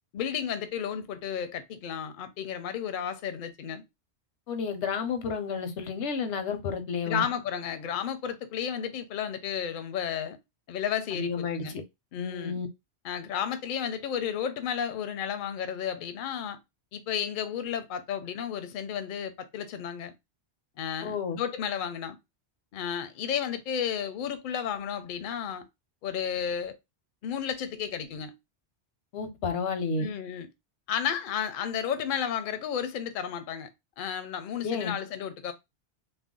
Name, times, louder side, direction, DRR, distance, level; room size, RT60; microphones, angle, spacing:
voice 1, 0.1-3.8 7.1-10.4 10.7-11.8 12.1-12.6 13.0-16.6 16.9-20.1 20.8-22.2 22.7-25.7 26.0-26.8 27.2-28.3 30.0-30.5 30.9-33.7 34.0-35.5, left 8 dB, 60° left, 0.6 m, -32 dB
voice 2, 4.5-7.3 11.1-11.6 12.2-12.7 21.0-21.4 29.1-30.1 34.6-35.0, left 5 dB, 85° left, 0.9 m, -31 dB
2.5 x 2.1 x 3.6 m
omnidirectional pair, 1.1 m